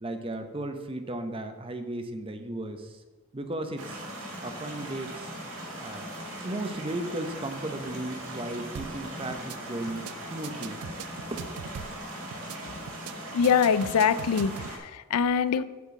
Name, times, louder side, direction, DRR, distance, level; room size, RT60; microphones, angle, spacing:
voice 1, 0.0-3.0 3.3-4.0 4.4-5.3 5.8-6.1 6.4-10.8 11.3-11.4, right 1 dB, 25° right, 7 dB, 0.7 m, -35 dB
sound 1, 3.8-14.8, right 1 dB, 70° right, 2.2 m, -39 dB
sound 2, 8.7-9.0 9.3-9.6 9.9-10.1 10.4-12.0 12.3-12.6 12.9-13.1 13.4-14.7, right 8 dB, 90° right, 0.4 m, -40 dB
voice 2, 13.3-15.6, left 6 dB, 85° left, 14 dB, 0.4 m, -24 dB
8.2 x 4.4 x 7.1 m, 1.2 s
head